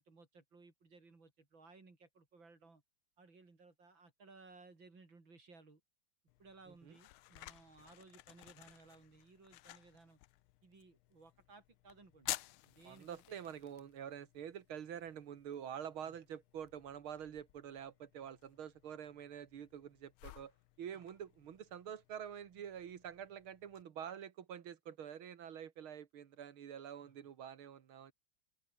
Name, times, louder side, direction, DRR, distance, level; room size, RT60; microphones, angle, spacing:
voice 1, 0.0-2.8 3.2-5.8 6.4-10.2 10.6-12.3 12.6-13.4 16.0-16.2 20.9-21.0 27.0-27.2, right 3 dB, 65° right, 5.3 m, -60 dB
sound 1, 6.3-23.8, left 17 dB, 85° left, 1.5 m, -53 dB
voice 2, 12.8-20.5 20.8-28.1, right 9 dB, 85° right, 2.4 m, -47 dB
open air
omnidirectional pair, 2.3 m